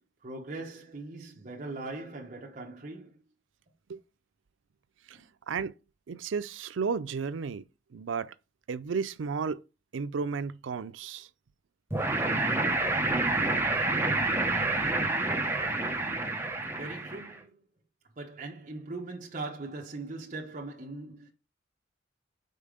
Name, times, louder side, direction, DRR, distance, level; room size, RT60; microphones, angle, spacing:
voice 1, 0.2-3.2 5.1-5.3 16.7-17.5 18.2-21.3, right 2 dB, 40° right, 1.0 m, -40 dB
voice 2, 6.1-7.6 7.9-8.3 8.7-9.6 9.9-11.3, right 5 dB, 85° right, 0.4 m, -33 dB
sound 1, 11.9-17.3, right 2 dB, 10° right, 0.9 m, -28 dB
5.5 x 4.2 x 5.0 m
head